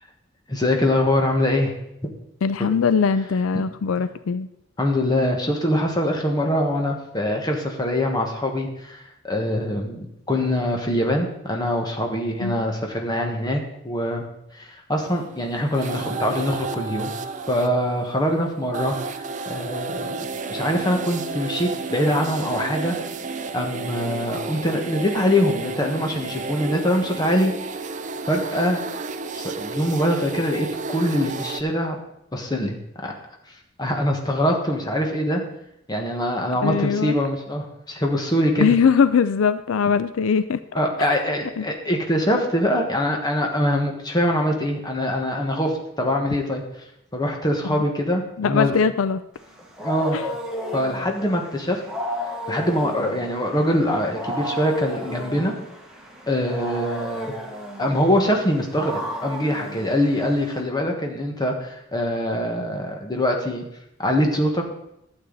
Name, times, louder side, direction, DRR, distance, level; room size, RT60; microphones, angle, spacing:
voice 1, 0.5-1.7 2.0-2.1 2.6-2.7 4.8-14.3 14.5-17.1 17.5-18.9 19.5-20.1 20.5-23.0 23.5-27.5 28.3-28.8 29.3-32.0 32.3-32.8 33.0-33.1 33.8-35.4 35.9-38.7 40.7-46.6 47.1-48.8 49.8-50.2 50.7-51.8 52.5-55.5 56.3-57.3 57.8-63.6 64.0-64.7, equal, 20° left, 2 dB, 1.5 m, -23 dB
voice 2, 2.4-4.5 12.4-12.7 36.6-37.1 38.6-40.6 41.6-41.7 47.6-47.8 48.4-49.2 50.1-50.3, left 6 dB, 80° left, 14 dB, 0.4 m, -21 dB
sound 1, 15.0-31.6, right 4 dB, 40° right, 0.5 m, -32 dB
Wild animals, 49.4-60.6, equal, 5° right, 1.5 m, -33 dB
12.0 x 8.0 x 4.0 m, 0.81 s
head